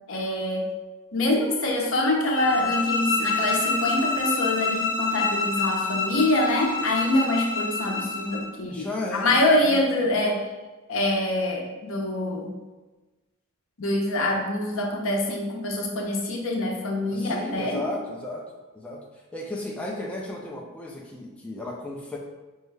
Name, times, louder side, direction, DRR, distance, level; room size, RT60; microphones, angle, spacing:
voice 1, 0.1-0.7 1.1-8.9 9.1-10.5 10.9-12.5 13.8-17.8, left 1 dB, 65° left, 1 dB, 0.7 m, -25 dB
sound 1, 2.3-8.5, left 3 dB, 40° left, 1.3 m, -27 dB
voice 2, 8.7-9.3 9.6-9.9 17.1-19.0 19.3-22.2, left 2 dB, 5° left, -3 dB, 0.4 m, -34 dB
5.3 x 2.3 x 3.2 m, 1.2 s
head